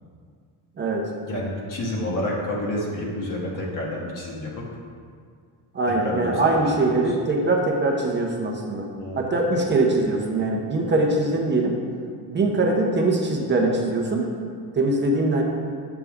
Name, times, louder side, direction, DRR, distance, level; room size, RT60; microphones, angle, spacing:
voice 1, 0.8-1.1 5.7-8.9 9.2-11.8 12.3-14.3 14.7-15.4, right 2 dB, 25° right, 0 dB, 0.8 m, -22 dB
voice 2, 1.3-4.6 6.0-7.1 9.0-9.3, left 1 dB, 50° left, -3 dB, 1.4 m, -29 dB
7.0 x 6.5 x 3.6 m, 2.1 s
cardioid pair, 145°, 41 cm